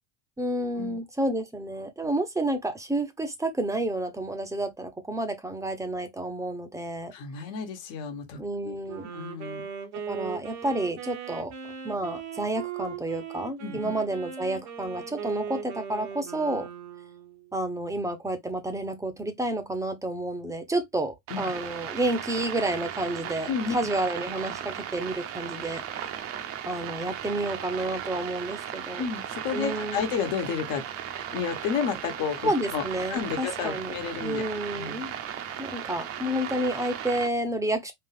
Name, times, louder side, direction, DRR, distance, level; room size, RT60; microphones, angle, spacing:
voice 1, 0.4-7.1 8.4-9.1 10.1-11.5 11.8-16.7 17.5-26.2 26.7-29.0 29.5-30.0 32.4-33.9 34.2-35.1 35.6-37.9, right 1 dB, 10° right, 0.7 m, -30 dB
voice 2, 7.1-8.7 9.1-9.7 13.6-13.9 21.3-21.5 23.5-23.8 29.0-30.8 31.3-34.4 34.7-35.0, left 6 dB, 60° left, 1.3 m, -31 dB
Wind instrument woodwind instrument, 8.9-17.5, right 7 dB, 85° right, 1.3 m, -39 dB
sound 1, 21.3-37.3, right 9 dB, 45° right, 0.7 m, -36 dB
3.8 x 2.4 x 3.3 m
supercardioid pair, 115°, 34 cm